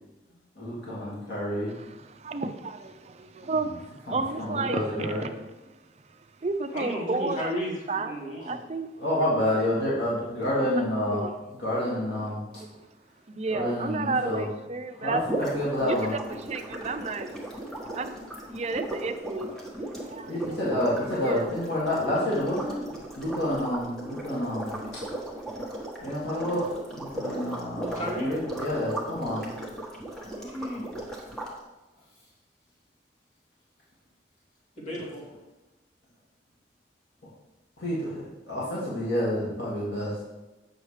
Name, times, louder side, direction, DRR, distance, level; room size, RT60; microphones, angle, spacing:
voice 1, 0.6-1.8 4.1-5.3 9.0-11.2 11.6-12.4 13.5-14.4 15.0-16.1 20.3-22.7 23.2-25.0 26.0-26.6 26.9-29.5 37.8-40.2, left 1 dB, 90° left, 2.1 m, -29 dB
voice 2, 1.7-5.3 6.1-7.5 7.9-8.9 11.1-11.3 12.2-12.3 13.3-15.2 15.9-16.2 16.5-17.3 17.8-19.7 20.0-20.6 21.2-21.5, right 3 dB, 40° right, 0.5 m, -32 dB
voice 3, 6.7-8.6 27.5-28.3 30.3-30.9 34.8-35.2, equal, 45° left, 2.5 m, -34 dB
sound 1, 15.2-31.5, right 1 dB, 5° left, 1.3 m, -37 dB
8.0 x 6.3 x 3.3 m
head